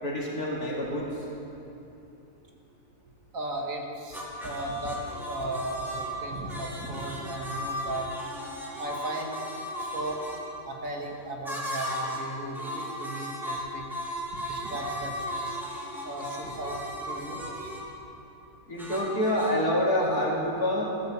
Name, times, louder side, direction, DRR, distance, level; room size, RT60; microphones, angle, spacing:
voice 1, 0.0-1.1 18.7-20.9, left 1 dB, 65° left, -4 dB, 3.2 m, -27 dB
voice 2, 3.3-8.1 8.8-9.4 9.8-10.2 10.7-13.8 14.3-15.1 15.4-15.6 16.1-17.5, right 1 dB, 60° right, 0 dB, 2.2 m, -36 dB
sound 1, 4.1-10.4 11.4-12.3 12.5-17.9 18.8-19.5, equal, ahead, 2.5 m, -36 dB
15.5 x 11.5 x 7.3 m, 2.9 s
omnidirectional pair, 1.7 m